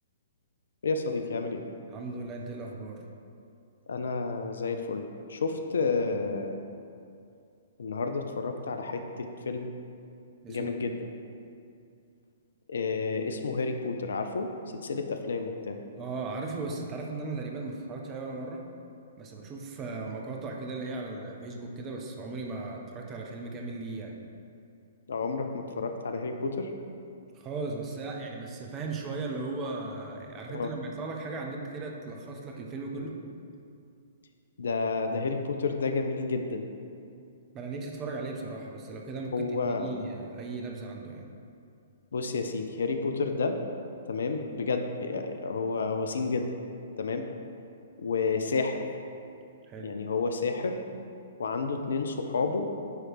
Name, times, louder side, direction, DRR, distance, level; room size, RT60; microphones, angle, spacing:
voice 1, 0.8-1.6 3.9-6.6 7.8-9.7 10.5-11.1 12.7-15.8 25.1-26.7 30.5-30.7 32.9-33.0 34.6-36.7 39.3-39.9 42.1-43.6 44.0-46.6 47.0-47.2 48.0-48.8 49.8-50.8 51.4-52.7, left 4 dB, 65° left, 6 dB, 0.5 m, -30 dB
voice 2, 1.9-3.0 10.4-10.7 16.0-18.6 19.2-24.2 27.3-33.1 37.5-41.3 49.7-49.9, right 3 dB, 25° right, 1 dB, 0.8 m, -37 dB
9.4 x 3.2 x 4.7 m, 2.5 s
figure-of-eight pair, 115°, 0 cm